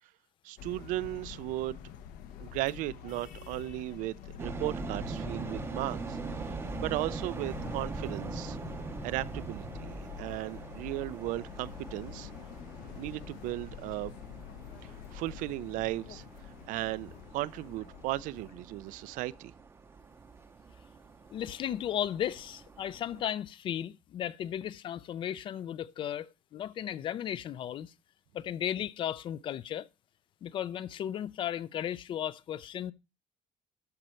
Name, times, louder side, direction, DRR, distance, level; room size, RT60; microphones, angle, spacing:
voice 1, 0.4-1.8 2.4-4.1 4.4-6.2 6.5-8.6 9.0-12.3 12.9-14.1 14.8-16.3 16.7-19.5, right 17 dB, 75° right, 0.4 m, -36 dB
sound 1, 0.6-19.4, left 9 dB, 85° left, 1.2 m, -46 dB
sound 2, 4.4-23.2, right 4 dB, 20° right, 0.6 m, -43 dB
voice 2, 21.3-27.9 28.3-29.9 30.4-32.9, left 10 dB, 40° left, 0.4 m, -35 dB
12.5 x 5.3 x 4.4 m
cardioid pair, 175°, 14 cm